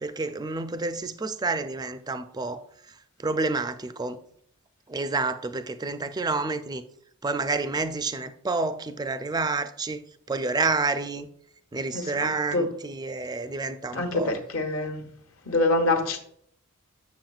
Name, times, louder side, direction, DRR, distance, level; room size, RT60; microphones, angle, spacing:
voice 1, 0.0-2.6 3.2-4.2 4.9-6.8 7.2-10.0 10.3-11.3 11.7-14.3, right 3 dB, 20° right, 0.4 m, -29 dB
voice 2, 11.9-12.7 13.9-15.0 15.5-16.2, left 2 dB, 70° left, 1.1 m, -26 dB
7.6 x 7.1 x 2.4 m
head